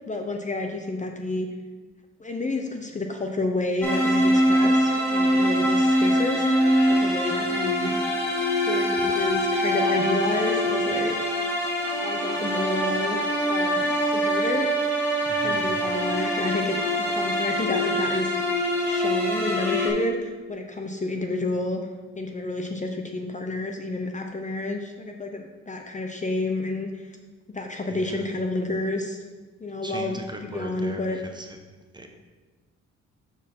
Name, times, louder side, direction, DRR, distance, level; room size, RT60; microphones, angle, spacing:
voice 1, 0.1-1.5 2.2-6.6 6.9-7.9 8.5-11.1 12.0-13.2 13.5-14.9 15.3-18.3 18.9-21.8 22.2-27.2 27.5-29.2 29.6-31.2, left 2 dB, 25° left, 4 dB, 0.7 m, -30 dB
sound 1, 3.8-19.9, equal, 10° left, 2.3 m, -23 dB
voice 2, 15.3-15.8 27.9-28.2 29.8-31.0 31.3-31.5 31.9-32.1, right 1 dB, 15° right, 3 dB, 1.0 m, -38 dB
7.1 x 4.4 x 5.6 m, 1.3 s
cardioid pair, 90°, 30 cm